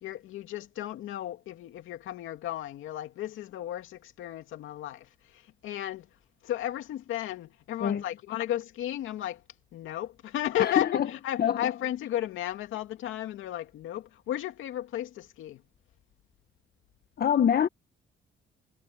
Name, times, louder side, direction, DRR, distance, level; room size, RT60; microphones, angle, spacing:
voice 1, 0.0-6.1 6.4-9.4 9.7-15.6, left 12 dB, 85° left, 2.4 m, -34 dB
voice 2, 10.6-11.1 11.4-11.7 17.2-17.7, left 8 dB, 50° left, 1.3 m, -25 dB
cardioid pair, 90°, 20 cm